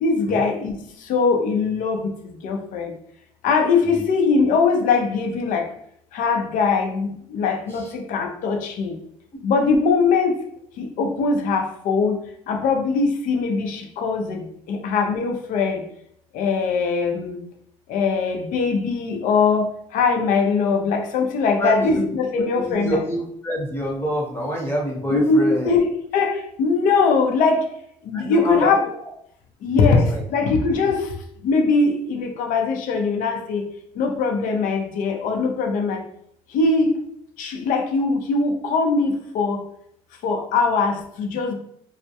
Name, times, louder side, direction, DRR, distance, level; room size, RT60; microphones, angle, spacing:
voice 1, 0.0-2.9 3.4-5.7 6.1-9.0 9.4-10.4 10.8-12.2 12.5-15.8 16.3-17.4 17.9-23.0 25.1-25.9 26.1-27.7 28.0-28.8 29.6-30.1 30.3-31.1 31.4-33.7 33.9-36.0 36.5-36.9 37.4-39.6 40.2-41.5, left 4 dB, 65° left, 3 dB, 0.5 m, -21 dB
voice 2, 21.6-22.0 22.3-25.7 28.1-28.7 29.6-30.2, equal, 15° left, -2 dB, 0.9 m, -27 dB
2.2 x 2.1 x 2.8 m, 0.70 s
supercardioid pair, 85°, 14 cm